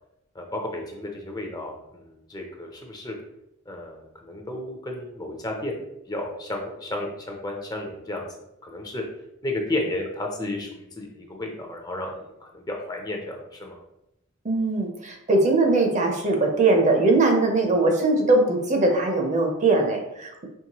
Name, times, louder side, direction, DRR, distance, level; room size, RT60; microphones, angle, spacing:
voice 1, 0.3-3.1 3.7-8.3 8.6-9.0 9.4-13.8, left 1 dB, 20° left, 1 dB, 0.5 m, -33 dB
voice 2, 14.4-20.5, right 2 dB, 35° right, 2 dB, 0.6 m, -21 dB
4.6 x 3.1 x 2.9 m, 0.84 s
head